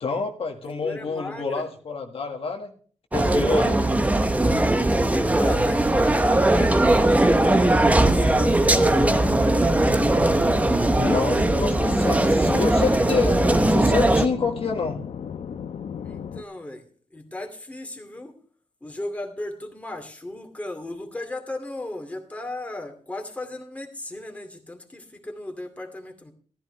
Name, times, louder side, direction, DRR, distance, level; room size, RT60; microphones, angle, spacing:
voice 1, 0.0-2.7 3.1-3.8 11.0-15.0, left 4 dB, 50° left, 3 dB, 1.7 m, -28 dB
voice 2, 0.6-1.7 3.7-4.1 4.8-8.7 16.0-16.8 17.1-18.3 18.8-26.3, left 1 dB, 10° left, 3 dB, 2.4 m, -36 dB
sound 1, 3.1-14.3, right 1 dB, 10° right, 0.9 m, -19 dB
sound 2, 7.4-16.4, left 7 dB, 70° left, 0.9 m, -35 dB
15.0 x 13.5 x 3.3 m, 0.43 s
wide cardioid pair, 170°, 12 cm